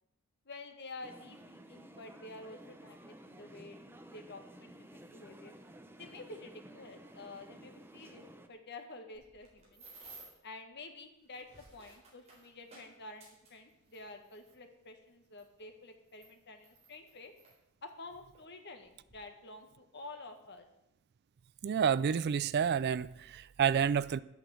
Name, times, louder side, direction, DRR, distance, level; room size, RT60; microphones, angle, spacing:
voice 1, 0.4-3.8 4.1-5.5 6.0-9.8 10.4-17.3 17.8-20.7, left 2 dB, 50° left, 1.5 m, -50 dB
sound 1, 1.0-8.5, right 1 dB, 10° right, 0.7 m, -54 dB
sound 2, 9.1-10.5 11.2-14.6 15.4-15.5 16.1-17.6 18.3-18.5 18.8-19.2, right 3 dB, 30° right, 4.1 m, -56 dB
voice 2, 21.6-24.2, right 7 dB, 45° right, 0.3 m, -29 dB
10.5 x 8.3 x 7.5 m
head